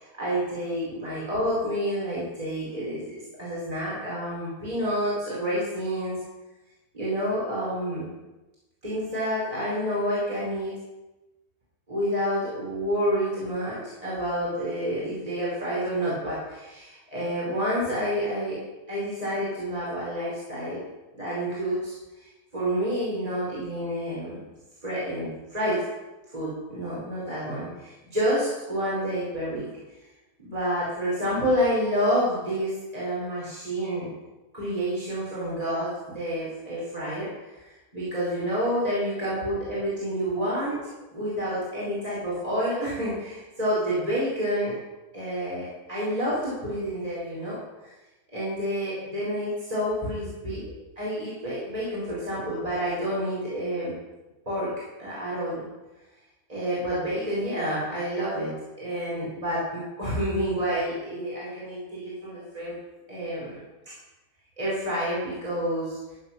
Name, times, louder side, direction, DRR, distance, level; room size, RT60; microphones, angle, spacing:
voice 1, 0.2-3.1 3.4-6.2 6.9-8.1 8.8-10.8 11.9-18.6 18.9-20.8 21.1-22.3 22.5-24.4 24.8-25.8 26.3-29.7 30.4-34.1 34.5-40.8 41.1-44.7 45.1-47.9 48.3-53.9 54.4-54.7 55.0-55.7 56.5-62.7 63.1-63.6 64.6-66.2, equal, 25° right, -8 dB, 4.8 m, -29 dB
14.0 x 8.8 x 5.9 m, 1.1 s
omnidirectional pair, 1.6 m